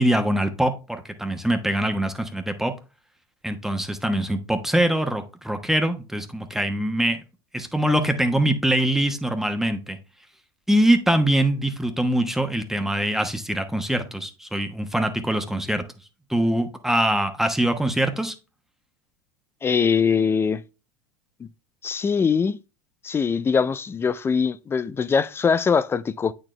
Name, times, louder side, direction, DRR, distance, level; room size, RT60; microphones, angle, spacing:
voice 1, 0.0-2.7 3.4-7.2 7.5-10.0 10.7-15.8 16.3-18.3, right 1 dB, 5° right, 1.1 m, -23 dB
voice 2, 19.6-20.6 21.4-21.5 21.8-22.6 23.0-26.3, left 6 dB, 20° left, 0.4 m, -22 dB
8.7 x 4.2 x 3.2 m
hypercardioid pair, 100°, 12 cm